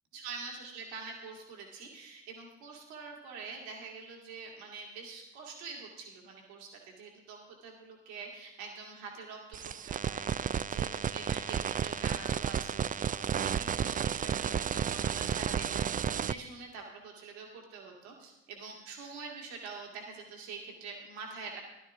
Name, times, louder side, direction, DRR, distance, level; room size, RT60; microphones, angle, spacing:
voice 1, 0.1-21.6, right 4 dB, 80° right, 0 dB, 2.0 m, -45 dB
sound 1, 9.5-16.3, right 8 dB, 25° right, 0.4 m, -32 dB
15.5 x 12.0 x 3.6 m, 0.96 s
hypercardioid pair, 40°, 31 cm